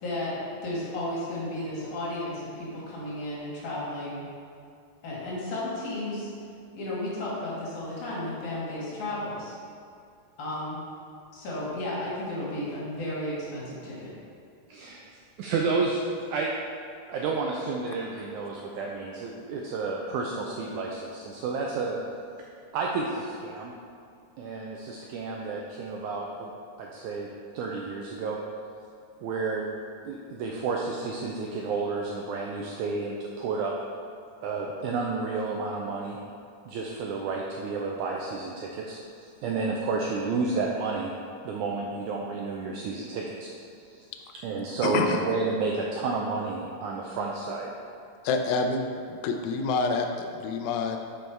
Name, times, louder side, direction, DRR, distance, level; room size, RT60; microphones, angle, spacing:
voice 1, 0.0-4.2 5.0-6.3 6.7-9.5 10.4-10.8 11.3-14.1, left 1 dB, 60° left, -7 dB, 2.9 m, -33 dB
voice 2, 14.7-15.1 15.4-16.0 16.3-16.5 17.1-22.0 22.7-23.7 24.4-26.5 26.8-27.3 27.5-28.4 29.2-29.7 30.0-33.7 34.4-36.2 36.7-41.1 41.4-43.5 43.9-44.1 44.4-47.7, right 4 dB, 80° right, -1 dB, 1.7 m, -31 dB
voice 3, 44.8-45.2 48.2-48.8 49.1-51.0, left 4 dB, 85° left, 4 dB, 1.6 m, -27 dB
6.3 x 5.4 x 4.4 m, 2.4 s
omnidirectional pair, 4.0 m